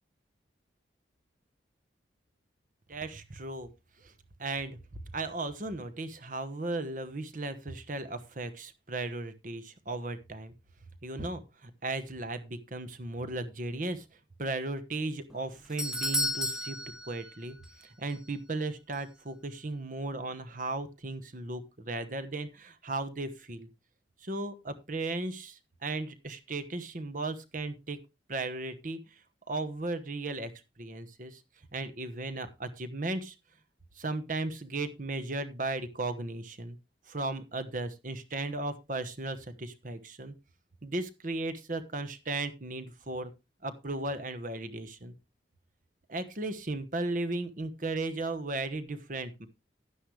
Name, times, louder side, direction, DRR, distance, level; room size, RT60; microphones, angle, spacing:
voice 1, 2.9-3.7 4.0-4.1 4.4-4.8 5.1-10.5 11.0-14.0 14.4-16.8 17.1-23.7 24.2-28.0 28.3-29.0 29.5-30.5 30.8-31.4 31.7-33.4 34.0-36.8 37.1-40.3 40.8-43.3 43.6-45.1 46.1-49.5, right 2 dB, 45° right, 11 dB, 1.1 m, -36 dB
Doorbell, 15.3-17.8 18.1-18.2 18.9-19.0, left 1 dB, 5° right, 0.8 m, -33 dB
11.5 x 9.8 x 3.2 m, 0.26 s
head